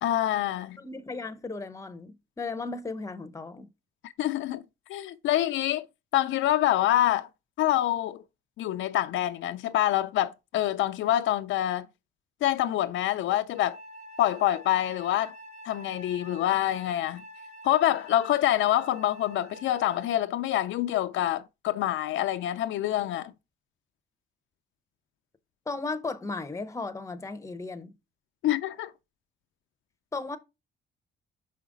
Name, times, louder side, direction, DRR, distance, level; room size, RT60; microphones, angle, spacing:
voice 1, 0.0-0.8 4.0-4.6 4.9-5.9 6.1-7.3 7.6-8.2 8.6-11.9 12.4-13.8 14.2-15.4 15.7-17.2 17.6-23.3 28.4-28.9, left 13 dB, 75° left, 0.4 m, -26 dB
voice 2, 0.8-3.7 25.7-27.9 30.1-30.4, left 3 dB, 15° left, 0.7 m, -35 dB
Wind instrument woodwind instrument, 13.5-20.3, equal, 50° right, 2.7 m, -47 dB
5.6 x 5.0 x 3.7 m
cardioid pair, 90°, 20 cm